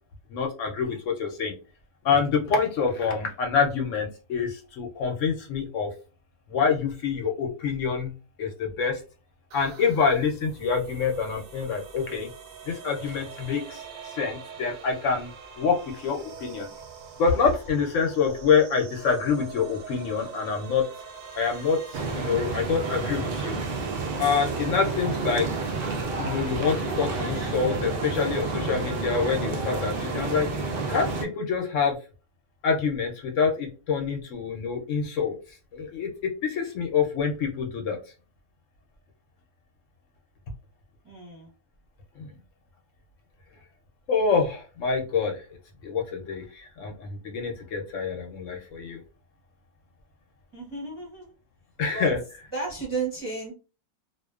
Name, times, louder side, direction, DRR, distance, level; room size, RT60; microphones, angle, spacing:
voice 1, 0.3-1.6 2.0-5.9 6.5-8.1 8.4-9.0 9.5-12.3 12.7-15.3 15.6-16.7 17.2-20.8 21.3-23.6 24.2-25.5 26.2-30.5 30.9-32.0 32.6-35.3 35.7-38.0 42.2-42.3 44.1-45.4 45.8-49.0 51.8-52.2, left 5 dB, 70° left, 1 dB, 0.8 m, -26 dB
sound 1, 9.5-26.1, right 6 dB, 65° right, 0.8 m, -44 dB
sound 2, 21.9-31.3, right 3 dB, 85° right, 0.5 m, -30 dB
voice 2, 41.0-41.5 50.5-51.3 51.9-52.2 52.5-53.5, right 3 dB, 25° right, -3 dB, 0.5 m, -33 dB
2.5 x 2.1 x 2.3 m, 0.33 s
omnidirectional pair, 1.5 m